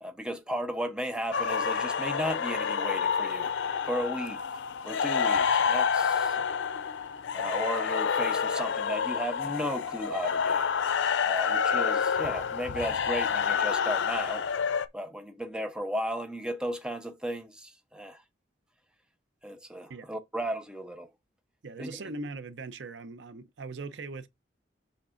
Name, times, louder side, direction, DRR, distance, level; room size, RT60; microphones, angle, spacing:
voice 1, 0.0-3.5 3.9-4.6 4.8-6.4 7.3-10.7 11.2-14.4 14.9-18.2 19.4-21.1 21.8-22.0, equal, 5° right, 0.7 m, -35 dB
sound 1, 1.3-14.9, left 6 dB, 90° left, 0.5 m, -28 dB
voice 2, 21.6-24.3, right 3 dB, 80° right, 0.6 m, -40 dB
7.2 x 5.8 x 2.5 m
head